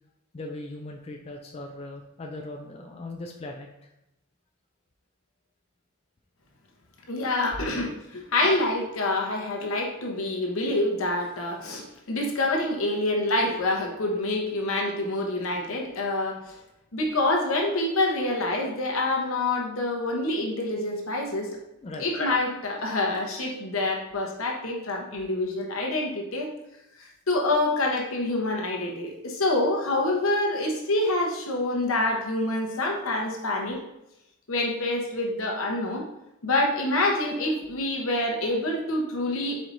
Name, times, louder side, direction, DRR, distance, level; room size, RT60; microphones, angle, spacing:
voice 1, 0.3-3.7 21.8-22.1, left 2 dB, 30° left, 1 dB, 0.4 m, -39 dB
voice 2, 7.1-16.4 16.9-21.5 22.0-26.5 27.0-33.8 34.5-36.0 36.4-39.6, left 2 dB, 75° left, 0 dB, 0.9 m, -26 dB
4.6 x 4.2 x 2.6 m, 0.87 s
head